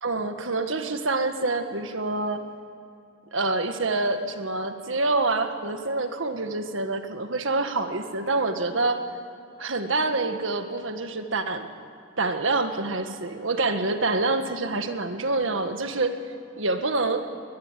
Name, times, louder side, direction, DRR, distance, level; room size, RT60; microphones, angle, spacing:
voice 1, 0.0-2.4 3.3-9.0 9.6-11.7 12.2-16.2 16.6-17.3, right 3 dB, 75° right, 7 dB, 1.7 m, -26 dB
22.0 x 20.0 x 9.3 m, 2.5 s
head